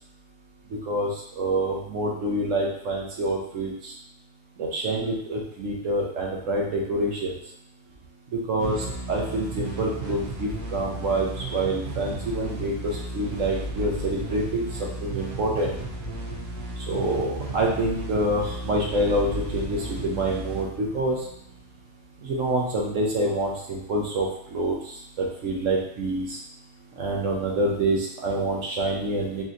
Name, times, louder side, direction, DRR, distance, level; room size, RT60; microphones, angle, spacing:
voice 1, 1.4-3.9 4.6-7.3 8.5-15.7 16.9-21.2 22.2-24.8 25.2-26.4 27.0-29.4, right 1 dB, 60° right, -2 dB, 1.0 m, -27 dB
sound 1, 8.6-21.9, right 1 dB, 85° right, 1.4 m, -34 dB
4.1 x 2.8 x 2.5 m, 0.71 s
omnidirectional pair, 1.6 m